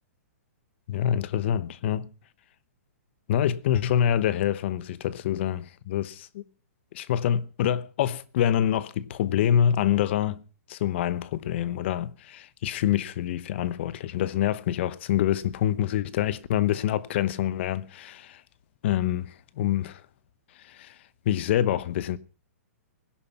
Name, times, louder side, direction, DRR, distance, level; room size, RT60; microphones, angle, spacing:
voice 1, 0.9-2.1 3.3-6.4 6.9-10.4 10.7-18.4 18.8-20.0 20.6-20.9 21.2-22.2, left 10 dB, 45° left, 1.1 m, -26 dB
20.0 x 11.5 x 5.9 m
hypercardioid pair, 160°, 8 cm